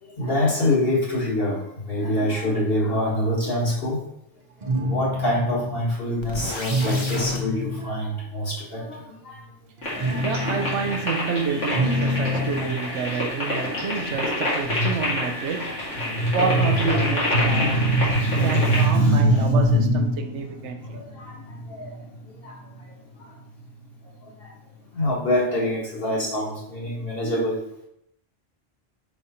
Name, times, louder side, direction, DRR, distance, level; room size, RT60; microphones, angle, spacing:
voice 1, 0.0-4.0 4.6-9.4 9.9-10.2 12.3-12.7 14.6-14.9 15.6-15.7 16.0-17.2 17.4-22.1 22.4-23.3 24.2-24.5 24.9-27.6, equal, 55° left, 2.0 m, -24 dB
sound 1, 4.6-5.9 6.6-7.9 9.8-11.0 11.5-12.8, left 1 dB, 45° right, 0.7 m, -27 dB
sound 2, 6.2-7.4, left 2 dB, 30° left, 0.7 m, -32 dB
sound 3, 9.8-18.9, left 1 dB, 85° left, 2.4 m, -28 dB
voice 2, 9.9-17.9 18.4-21.0, right 6 dB, 80° right, 0.9 m, -29 dB
5.1 x 4.8 x 4.3 m
omnidirectional pair, 1.2 m